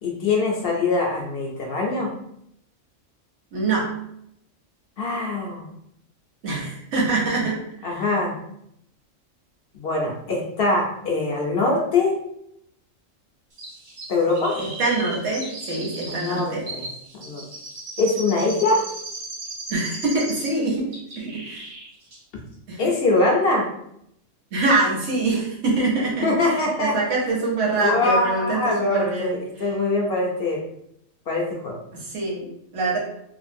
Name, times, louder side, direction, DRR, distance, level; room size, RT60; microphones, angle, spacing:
voice 1, 0.0-2.1 5.0-5.7 7.8-8.4 9.7-12.1 14.1-14.5 16.1-16.9 17.1-17.4 18.0-18.8 22.8-23.6 26.2-26.9 27.8-30.6 31.3-31.8, left 2 dB, 60° left, -1 dB, 0.7 m, -23 dB
voice 2, 3.5-4.0 6.4-8.0 14.5-16.7 19.7-20.9 21.2-21.7 22.7-23.0 24.5-29.4 31.9-33.0, right 3 dB, 60° right, -3 dB, 1.2 m, -25 dB
Chirp tweet, 13.6-20.6 20.9-21.9 22.1-22.2, right 2 dB, 80° right, 1.4 m, -36 dB
3.0 x 2.4 x 2.6 m, 0.75 s
omnidirectional pair, 1.4 m